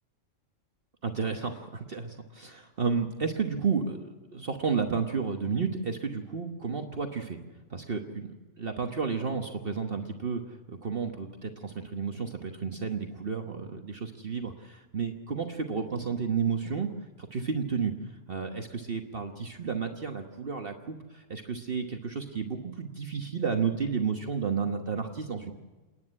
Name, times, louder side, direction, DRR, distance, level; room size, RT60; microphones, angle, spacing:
voice 1, 1.0-7.4 7.7-16.9 17.2-25.5, right 5 dB, 50° right, 4 dB, 1.4 m, -32 dB
28.5 x 10.0 x 9.8 m, 1.3 s
omnidirectional pair, 1.3 m